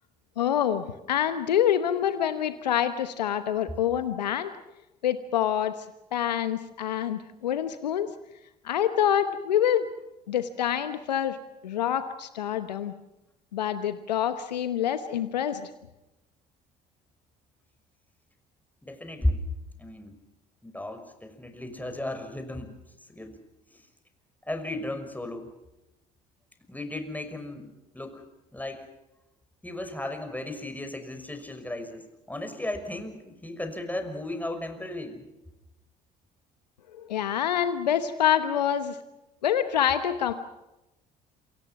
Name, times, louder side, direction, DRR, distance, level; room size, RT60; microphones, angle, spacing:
voice 1, 0.4-4.5 5.0-5.9 6.1-8.1 8.6-9.9 10.3-11.4 11.6-12.9 13.5-15.7 36.9-39.0 39.4-40.3, left 10 dB, 90° left, 11 dB, 1.0 m, -26 dB
voice 2, 18.8-19.4 19.8-20.1 20.6-22.7 23.1-23.4 23.7-23.9 24.4-25.5 26.7-28.2 28.5-28.9 29.6-35.3, left 1 dB, 10° left, 7 dB, 6.1 m, -35 dB
27.5 x 25.0 x 5.9 m, 0.96 s
hypercardioid pair, 60°, 21 cm